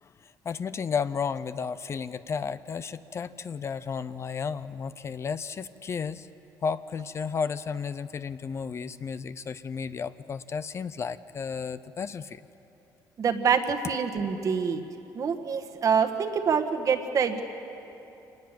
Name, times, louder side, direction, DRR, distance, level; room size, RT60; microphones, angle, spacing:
voice 1, 0.0-6.3 6.6-12.5, left 6 dB, 35° left, 14 dB, 0.5 m, -33 dB
voice 2, 13.2-14.8 15.1-17.4, right 6 dB, 45° right, 6 dB, 1.5 m, -26 dB
25.5 x 20.0 x 7.5 m, 2.9 s
cardioid pair, 125°, 8 cm